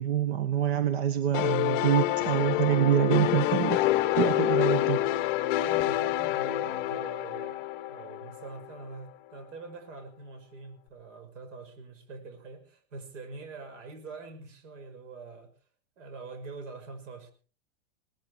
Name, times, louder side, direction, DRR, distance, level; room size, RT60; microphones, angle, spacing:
voice 1, 0.0-5.0, right 9 dB, 55° right, 9 dB, 1.6 m, -26 dB
sound 1, 1.3-8.8, left 15 dB, 45° left, 1.0 m, -27 dB
voice 2, 5.5-15.5 16.0-17.3, right 4 dB, 85° right, 9 dB, 6.1 m, -44 dB
19.5 x 14.0 x 4.8 m, 0.41 s
supercardioid pair, 175°, 36 cm